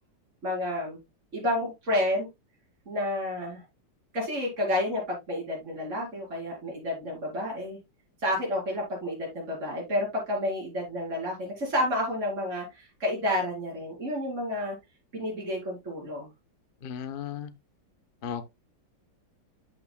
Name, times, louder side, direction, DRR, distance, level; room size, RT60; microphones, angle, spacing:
voice 1, 0.4-1.0 1.3-2.3 2.9-3.6 4.1-7.8 8.2-14.8 15.1-16.3, left 1 dB, 40° right, 4.5 m, -30 dB
voice 2, 16.8-17.5 18.2-18.5, left 8 dB, 40° left, 0.8 m, -35 dB
8.9 x 8.5 x 2.2 m
omnidirectional pair, 2.0 m